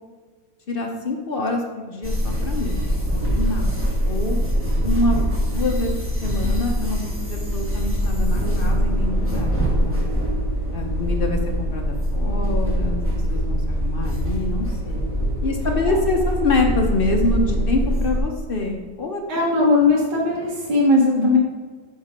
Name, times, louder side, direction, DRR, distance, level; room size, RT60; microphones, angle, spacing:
voice 1, 0.7-4.4 4.8-5.9 6.2-10.0 10.7-13.0 13.3-15.0 15.4-19.2 21.2-21.3, left 2 dB, 55° left, 2 dB, 0.6 m, -26 dB
sound 1, 2.0-18.2, equal, 10° right, 1.2 m, -23 dB
voice 2, 19.3-21.4, left 2 dB, 65° right, -4 dB, 1.7 m, -18 dB
8.9 x 3.9 x 5.5 m, 1.5 s
omnidirectional pair, 2.0 m